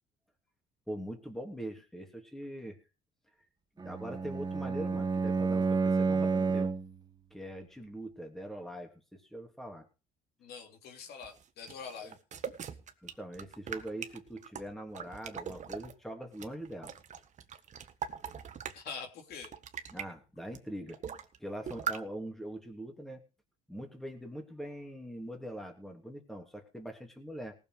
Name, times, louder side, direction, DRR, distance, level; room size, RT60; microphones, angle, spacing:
voice 1, 0.9-2.8 3.8-6.7 7.3-9.9 12.0-12.1 13.0-16.9 19.9-21.0 21.4-23.2 23.7-27.6, right 1 dB, ahead, 3 dB, 3.0 m, -42 dB
Bowed string instrument, 3.8-7.0, right 4 dB, 25° right, 1.4 m, -30 dB
voice 2, 10.4-12.2 18.7-19.5, left 6 dB, 70° left, 4 dB, 3.3 m, -44 dB
sound 1, 11.2-15.9 16.3-18.9 19.3-20.1 20.5-20.6 20.9-21.4 21.7-22.0, right 7 dB, 45° right, 1.5 m, -41 dB
18.5 x 7.1 x 5.1 m, 0.32 s
cardioid pair, 110°, 17 cm